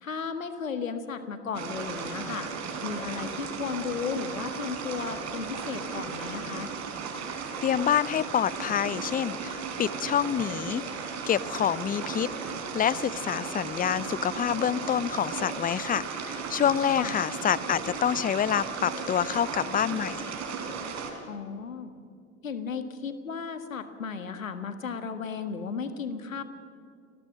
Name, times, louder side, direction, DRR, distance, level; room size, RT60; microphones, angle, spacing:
voice 1, 0.0-2.5 2.8-6.7 17.0-17.2 21.3-21.9 22.4-26.4, left 6 dB, 80° left, 10 dB, 1.7 m, -35 dB
sound 1, 1.5-21.1, right 5 dB, 45° right, 4.4 m, -35 dB
voice 2, 7.6-10.8 11.3-20.3, left 9 dB, 20° left, 20 dB, 0.7 m, -27 dB
30.0 x 20.5 x 6.3 m, 2.3 s
figure-of-eight pair, 65°, 40 cm